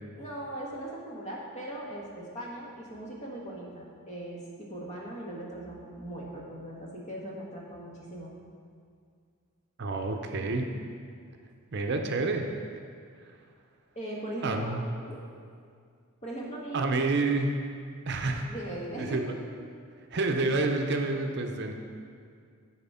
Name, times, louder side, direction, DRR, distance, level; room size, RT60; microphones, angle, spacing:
voice 1, 0.2-8.4 13.9-14.7 15.0-15.2 16.2-17.0 18.2-19.3, right 1 dB, 35° left, -3 dB, 1.4 m, -39 dB
voice 2, 9.8-10.7 11.7-12.4 14.4-14.8 16.7-17.5 18.1-18.5 19.0-19.2 20.1-21.7, right 3 dB, 50° right, 4 dB, 0.6 m, -28 dB
10.5 x 4.3 x 5.6 m, 2.2 s
head